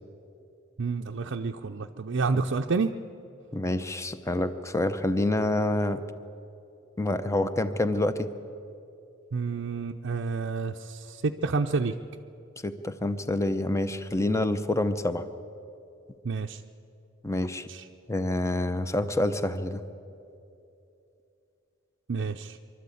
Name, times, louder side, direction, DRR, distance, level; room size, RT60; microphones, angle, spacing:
voice 1, 0.8-2.9 9.3-12.0 16.2-16.6 17.7-17.8 22.1-22.6, right 4 dB, 65° right, 2 dB, 0.6 m, -29 dB
voice 2, 3.5-6.0 7.0-8.3 12.6-15.3 17.2-17.7 18.1-19.8, left 1 dB, 15° left, 11 dB, 0.7 m, -27 dB
24.5 x 12.5 x 8.5 m, 2.7 s
head